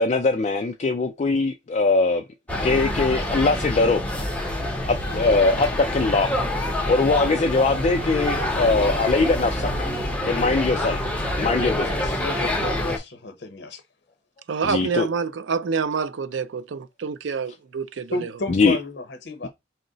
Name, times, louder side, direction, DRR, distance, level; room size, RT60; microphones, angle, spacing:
voice 1, 0.0-2.2 2.6-4.0 4.9-6.3 6.9-9.9 10.2-11.0 11.4-12.2 14.6-15.1 18.5-18.8 19.4-19.5, left 3 dB, 35° left, 0.3 m, -21 dB
sound 1, 2.5-13.0, left 1 dB, 5° left, 0.7 m, -26 dB
voice 2, 12.1-13.8 18.1-19.5, left 2 dB, 60° left, 0.8 m, -32 dB
voice 3, 14.5-18.3, right 5 dB, 70° right, 0.4 m, -27 dB
4.5 x 2.1 x 3.8 m
head